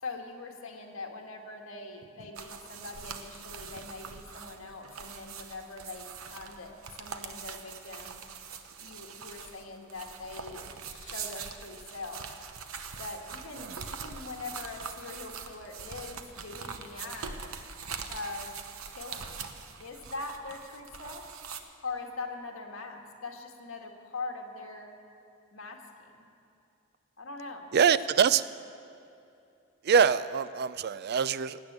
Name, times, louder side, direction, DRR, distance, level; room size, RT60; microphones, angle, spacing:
voice 1, 0.0-6.7 7.0-8.2 8.8-12.3 13.0-17.4 18.1-18.6 18.8-19.5 19.8-21.3 21.8-25.0 25.5-26.3 27.2-27.7, left 3 dB, 70° left, 2 dB, 1.7 m, -42 dB
sound 1, 2.3-21.6, right 6 dB, 80° right, 0.9 m, -43 dB
voice 2, 27.7-28.4 29.8-31.6, right 7 dB, 50° right, 16 dB, 0.4 m, -24 dB
16.0 x 9.6 x 8.0 m, 2.7 s
head